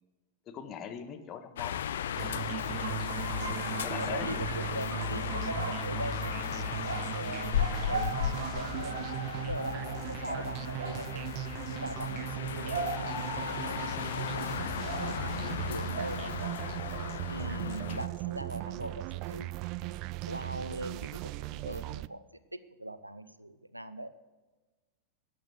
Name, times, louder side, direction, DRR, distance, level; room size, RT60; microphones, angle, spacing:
voice 1, 0.5-1.9 3.8-4.8 7.3-7.4 10.2-10.4, left 8 dB, 30° left, 7 dB, 1.6 m, -42 dB
sound 1, 1.6-18.1, left 10 dB, 60° left, 0.6 m, -36 dB
sound 2, 2.2-22.1, right 18 dB, 40° right, 0.3 m, -38 dB
sound 3, 2.8-11.2 12.3-17.1 17.4-17.8, right 3 dB, 60° right, 3.2 m, -41 dB
voice 2, 3.1-6.4 6.7-9.0 9.4-11.3 11.7-16.7 17.3-19.7 20.3-22.2 22.5-24.1, right 1 dB, 85° right, 14 dB, 0.7 m, -41 dB
13.0 x 8.6 x 7.9 m, 1.2 s
figure-of-eight pair, 90°, 0 cm